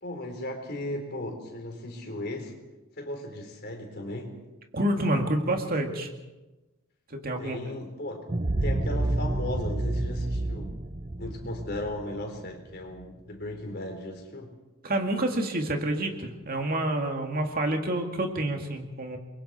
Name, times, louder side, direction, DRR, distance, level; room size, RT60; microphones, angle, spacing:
voice 1, 0.0-2.5 3.0-4.3 7.4-8.3 8.6-10.7 11.2-14.5, left 1 dB, 50° left, 3 dB, 4.2 m, -36 dB
voice 2, 4.7-6.1 7.1-7.6 14.8-19.2, right 1 dB, 45° right, 3 dB, 2.4 m, -28 dB
sound 1, 8.3-13.0, right 2 dB, 30° right, 0.7 m, -29 dB
29.5 x 23.0 x 4.4 m, 1.1 s
head